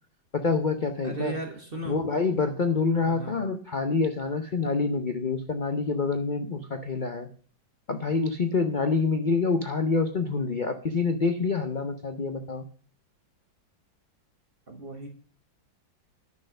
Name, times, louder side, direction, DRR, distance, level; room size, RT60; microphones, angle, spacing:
voice 1, 0.3-1.3 1.8-7.3 7.9-12.7, left 4 dB, 70° left, 7 dB, 0.4 m, -27 dB
voice 2, 1.0-2.0 3.0-3.4 14.7-15.1, right 3 dB, 30° right, 3 dB, 1.6 m, -36 dB
10.5 x 6.5 x 6.4 m, 0.43 s
omnidirectional pair, 2.1 m